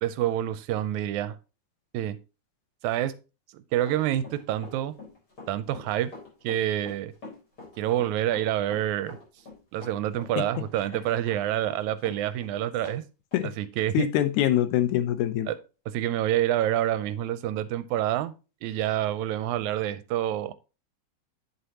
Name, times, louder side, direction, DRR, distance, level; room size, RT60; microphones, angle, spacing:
voice 1, 0.0-1.4 1.9-2.2 2.8-3.1 3.5-4.9 5.5-6.1 6.4-7.1 7.8-9.2 9.7-13.0 13.6-14.1 15.5-15.6 15.9-18.3 18.6-20.5, right 12 dB, 85° right, 2.0 m, -27 dB
Run, 3.8-13.0 13.3-13.4 13.8-13.9, left 3 dB, 35° left, 4.8 m, -45 dB
voice 2, 13.9-15.5, left 12 dB, 90° left, 2.2 m, -24 dB
8.4 x 7.9 x 2.9 m
omnidirectional pair, 3.4 m